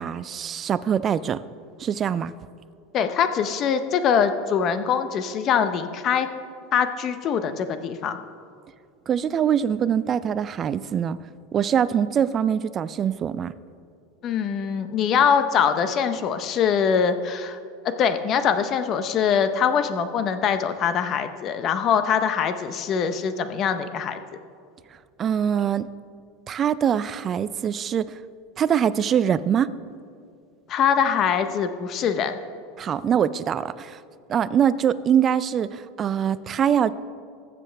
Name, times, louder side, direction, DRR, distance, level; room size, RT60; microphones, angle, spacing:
voice 1, 0.0-1.4 1.8-2.3 9.1-11.2 11.5-13.5 25.2-25.9 26.5-28.2 28.6-29.7 32.8-34.0 34.3-36.9, right 8 dB, 25° right, 15 dB, 0.3 m, -23 dB
voice 2, 2.9-6.3 6.7-8.2 14.2-17.6 17.8-24.2 30.7-32.4, left 7 dB, 35° left, 10 dB, 0.6 m, -23 dB
19.5 x 7.6 x 3.4 m, 2.3 s
supercardioid pair, 150°, 0 cm